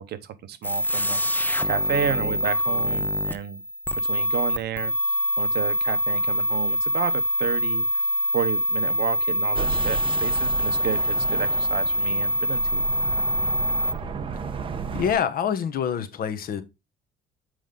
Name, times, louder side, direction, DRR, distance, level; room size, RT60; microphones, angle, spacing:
voice 1, 0.0-3.6 3.9-8.0 8.3-12.8, right 10 dB, 60° right, 0.9 m, -31 dB
sound 1, 0.6-13.9, equal, 10° left, 0.6 m, -24 dB
sound 2, 9.5-15.1, right 6 dB, 25° right, 0.9 m, -33 dB
voice 2, 14.9-16.6, left 8 dB, 50° left, 1.1 m, -26 dB
7.7 x 5.1 x 3.8 m
cardioid pair, 155°, 19 cm